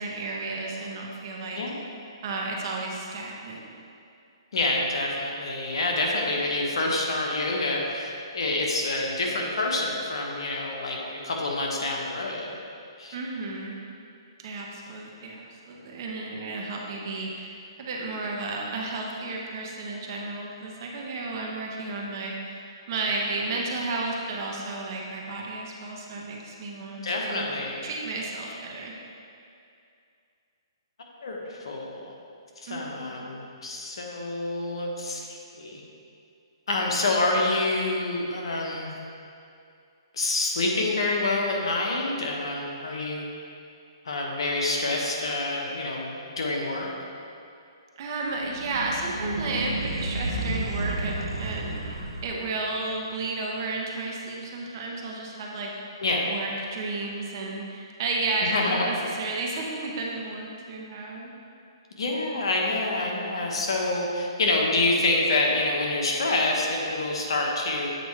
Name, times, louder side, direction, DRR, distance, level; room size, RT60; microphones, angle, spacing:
voice 1, 0.0-1.6 2.2-3.7 13.1-13.8 14.4-17.5 17.8-27.5 27.8-29.0 32.7-33.2 48.0-55.7 56.3-61.3, right 3 dB, 45° right, -1 dB, 0.9 m, -32 dB
voice 2, 1.5-1.9 4.5-12.5 13.0-13.2 27.0-27.8 31.2-32.1 32.6-35.8 36.7-38.9 40.1-43.3 44.0-46.9 56.0-56.3 58.4-58.9 62.0-67.9, left 2 dB, 75° left, -1 dB, 1.1 m, -27 dB
sound 1, 48.4-52.6, right 1 dB, 90° right, 0.8 m, -31 dB
7.9 x 4.5 x 3.2 m, 2.5 s
hypercardioid pair, 150°, 3 cm